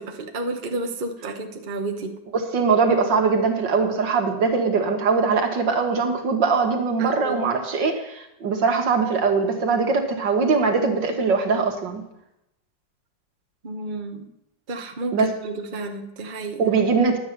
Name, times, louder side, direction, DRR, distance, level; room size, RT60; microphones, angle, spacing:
voice 1, 0.0-2.1 7.0-7.4 13.6-14.3 14.7-16.6, right 2 dB, 30° right, 4 dB, 1.0 m, -31 dB
voice 2, 2.3-12.0 15.1-15.3 16.6-17.2, right 4 dB, 70° right, 4 dB, 2.2 m, -21 dB
11.5 x 8.7 x 6.8 m, 0.84 s
omnidirectional pair, 2.0 m